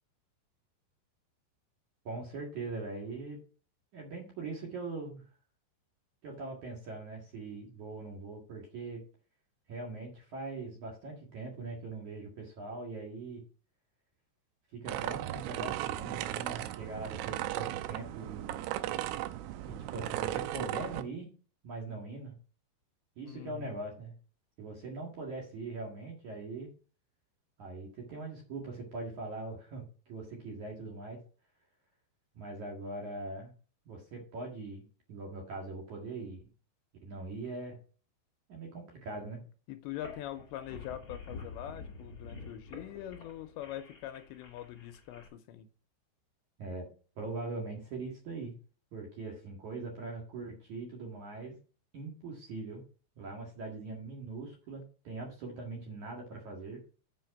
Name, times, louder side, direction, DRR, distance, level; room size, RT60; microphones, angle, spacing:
voice 1, 2.0-3.4 3.9-5.2 6.2-9.0 9.7-13.4 14.7-18.6 19.6-21.3 21.6-22.3 23.2-24.1 24.6-26.7 27.6-31.2 32.3-33.5 33.9-36.5 37.0-37.8 38.5-39.4 46.6-46.9 47.2-48.5 48.9-51.6 51.9-52.8 53.2-56.8, right 3 dB, 55° right, 2.4 m, -41 dB
sound 1, 14.9-21.0, right 14 dB, 90° right, 3.1 m, -36 dB
voice 2, 23.2-23.8 39.7-45.7, left 12 dB, 80° left, 2.7 m, -43 dB
sound 2, 39.9-45.3, left 4 dB, 40° left, 1.9 m, -48 dB
7.7 x 5.7 x 5.8 m
omnidirectional pair, 5.5 m